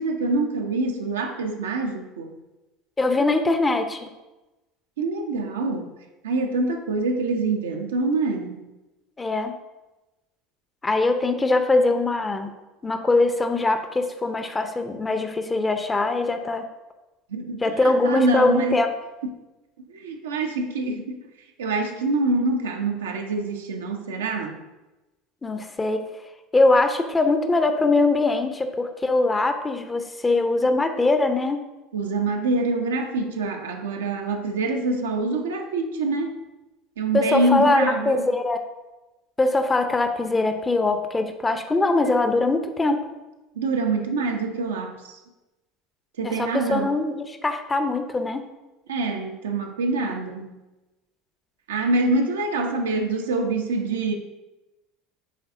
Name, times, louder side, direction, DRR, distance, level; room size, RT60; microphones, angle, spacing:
voice 1, 0.0-2.3 5.0-5.9 6.2-8.7 17.3-18.8 19.9-21.2 21.6-24.6 31.9-36.3 37.0-38.4 43.6-45.2 46.2-47.0 48.9-50.5 51.7-54.2, right 3 dB, 75° right, 3 dB, 0.7 m, -25 dB
voice 2, 3.0-4.1 9.2-9.5 10.8-12.5 12.8-16.6 17.6-18.9 25.4-26.0 26.5-31.6 37.1-38.6 39.4-43.0 46.2-47.2 47.4-48.5, left 2 dB, 20° left, 7 dB, 0.7 m, -22 dB
10.0 x 4.0 x 2.6 m, 1.1 s
figure-of-eight pair, 70°, 0 cm